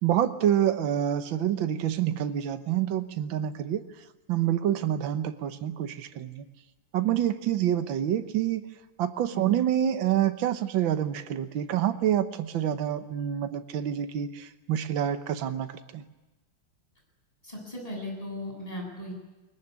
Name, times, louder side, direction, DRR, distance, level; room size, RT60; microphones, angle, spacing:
voice 1, 0.0-3.8 4.3-6.4 6.9-8.6 9.0-16.0, right 10 dB, 65° right, 9 dB, 1.8 m, -27 dB
voice 2, 17.4-19.1, left 1 dB, 15° left, 0 dB, 8.1 m, -37 dB
21.5 x 21.0 x 9.7 m, 1.1 s
omnidirectional pair, 2.3 m